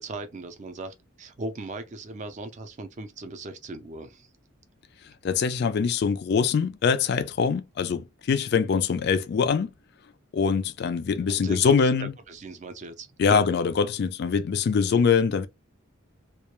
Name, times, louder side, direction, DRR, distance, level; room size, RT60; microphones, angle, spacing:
voice 1, 0.0-4.3 11.3-13.5 14.9-15.0, right 2 dB, 35° right, 0.4 m, -38 dB
voice 2, 5.2-9.7 10.3-12.1 13.2-15.5, left 6 dB, 55° left, 0.3 m, -23 dB
2.3 x 2.1 x 2.9 m
head